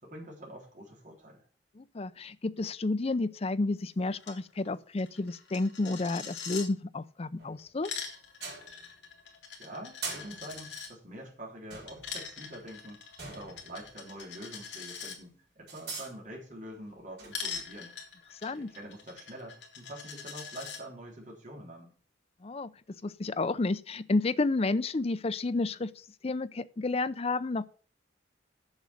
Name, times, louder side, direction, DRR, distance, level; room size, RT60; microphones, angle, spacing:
voice 1, 0.0-1.5 9.6-17.9 18.5-21.9, right 1 dB, 45° right, 3.6 m, -46 dB
voice 2, 1.8-7.9 18.4-18.7 22.4-22.7 23.0-25.9 26.2-27.7, left 3 dB, 35° left, 0.5 m, -31 dB
Coin (dropping), 4.2-4.4 4.7-4.8 5.0-6.7 7.6-10.9 11.9-15.2 17.3-20.8, left 6 dB, 70° left, 2.2 m, -42 dB
sound 1, 7.4-8.0 8.4-9.2 10.0-11.0 11.7-14.6 14.9-15.0 15.7-16.1 17.0-17.7 19.1-19.2, right 4 dB, 60° right, 4.7 m, -44 dB
7.3 x 6.3 x 6.9 m
head